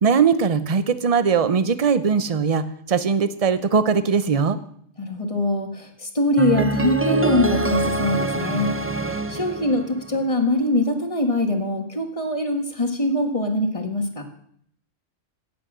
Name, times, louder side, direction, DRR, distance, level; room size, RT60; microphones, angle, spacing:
voice 1, 0.0-4.6, right 6 dB, 35° right, 13 dB, 0.7 m, -20 dB
voice 2, 5.0-8.7 9.3-14.2, left 1 dB, 25° left, 5 dB, 1.7 m, -23 dB
sound 1, 6.4-10.4, right 3 dB, 20° right, 0.4 m, -25 dB
16.5 x 8.3 x 6.2 m, 0.66 s
omnidirectional pair, 1.3 m